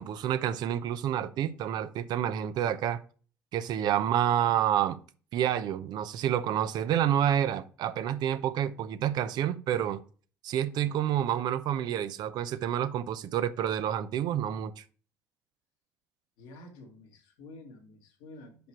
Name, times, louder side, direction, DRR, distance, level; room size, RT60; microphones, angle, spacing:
voice 1, 0.0-3.0 3.5-5.0 5.3-10.0 10.4-14.8, right 10 dB, 65° right, 0.6 m, -28 dB
voice 2, 16.4-18.7, left 2 dB, 75° left, 1.7 m, -50 dB
5.9 x 5.2 x 4.6 m
hypercardioid pair, 60°, 8 cm